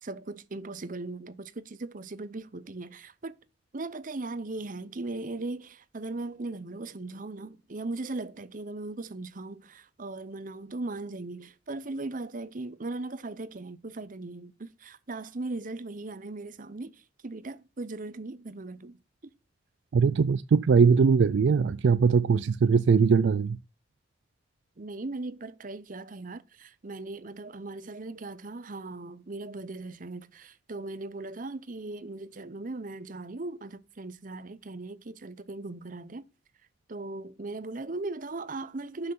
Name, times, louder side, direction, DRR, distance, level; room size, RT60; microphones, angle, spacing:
voice 1, 0.0-3.3 3.7-19.0 24.8-36.2 36.9-39.1, right 2 dB, 45° right, 0.8 m, -38 dB
voice 2, 19.9-23.6, right 5 dB, 70° right, 0.4 m, -21 dB
7.6 x 5.8 x 5.8 m
head